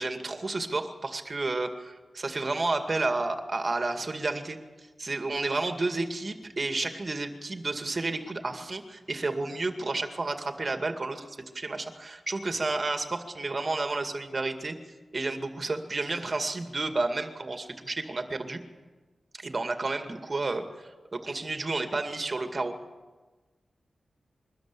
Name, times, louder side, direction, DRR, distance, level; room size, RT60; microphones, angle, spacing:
voice 1, 0.0-4.6 5.0-14.8 15.1-18.6 19.3-22.7, right 3 dB, 40° right, 6 dB, 2.2 m, -31 dB
22.5 x 13.0 x 9.8 m, 1.3 s
wide cardioid pair, 90°, 0 cm